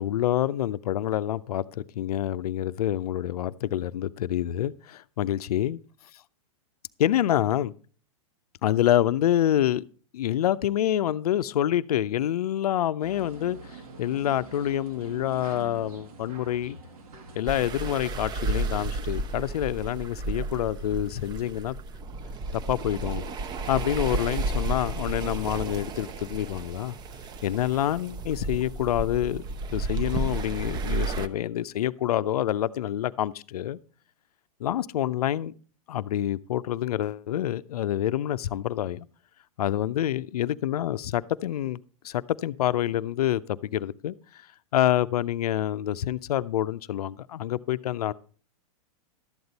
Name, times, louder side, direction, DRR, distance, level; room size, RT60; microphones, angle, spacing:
voice 1, 0.0-5.8 7.0-7.7 8.6-9.8 10.1-13.6 14.0-16.8 17.4-21.7 22.7-23.2 23.7-26.9 27.4-29.4 29.7-33.8 34.6-35.5 35.9-39.1 39.6-41.8 42.0-44.1 44.7-48.1, left 12 dB, 80° left, 0.5 m, -27 dB
sound 1, 13.0-18.0, right 4 dB, 75° right, 1.8 m, -45 dB
Agua Olas, 17.5-31.3, right 3 dB, 20° right, 0.5 m, -32 dB
12.0 x 7.9 x 4.0 m
hypercardioid pair, 125°, 19 cm